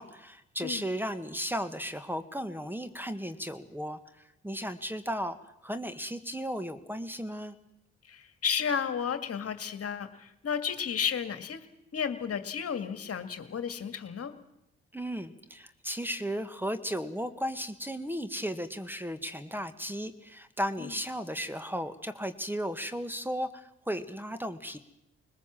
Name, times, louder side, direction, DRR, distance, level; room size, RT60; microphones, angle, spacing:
voice 1, 0.0-5.4 5.6-7.6 14.9-24.8, equal, 5° right, 11 dB, 1.7 m, -35 dB
voice 2, 8.1-11.7 11.9-14.3 20.8-20.9, left 7 dB, 50° left, 10 dB, 2.0 m, -33 dB
21.5 x 20.5 x 7.6 m, 0.85 s
hypercardioid pair, 50°, 30 cm